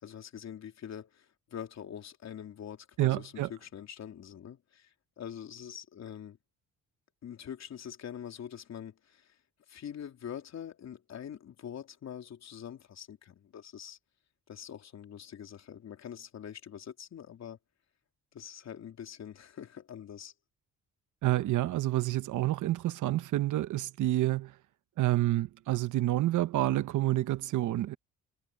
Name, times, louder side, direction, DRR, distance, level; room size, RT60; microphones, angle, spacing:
voice 1, 0.0-6.4 7.2-9.4 9.7-14.0 14.5-17.6 18.3-20.3, left 9 dB, 60° left, 3.6 m, -44 dB
voice 2, 3.0-3.5 21.2-24.5 25.0-28.0, right 15 dB, 80° right, 1.1 m, -28 dB
cardioid pair, 90°, 30 cm